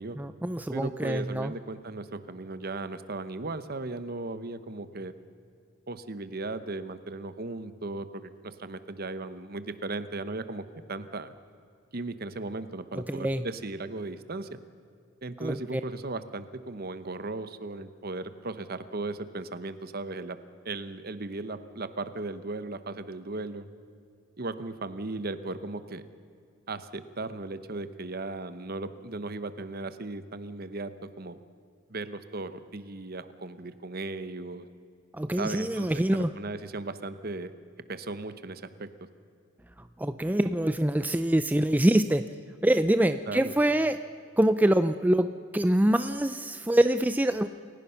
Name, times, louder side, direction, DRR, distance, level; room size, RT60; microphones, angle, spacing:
voice 1, 0.2-1.5 13.1-13.4 15.4-15.8 35.1-36.3 39.8-42.2 42.6-44.0 44.4-47.5, right 1 dB, 10° right, 10 dB, 0.4 m, -25 dB
voice 2, 0.7-5.1 5.9-11.3 11.9-14.6 15.2-20.4 20.6-23.7 24.4-26.0 26.7-31.4 31.9-34.6 35.4-37.5 37.9-38.9 43.3-43.5, right 2 dB, 45° right, 12 dB, 1.0 m, -37 dB
28.5 x 16.5 x 5.8 m, 2.4 s
head